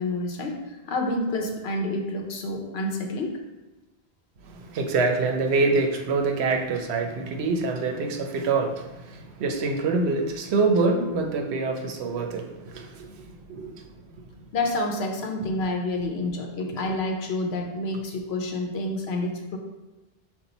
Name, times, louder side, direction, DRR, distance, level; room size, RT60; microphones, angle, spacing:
voice 1, 0.0-3.4 14.5-19.6, left 2 dB, 80° left, 2 dB, 1.0 m, -28 dB
voice 2, 4.4-13.8, right 3 dB, 90° right, 4 dB, 0.9 m, -25 dB
5.5 x 2.5 x 3.9 m, 1.1 s
omnidirectional pair, 1.1 m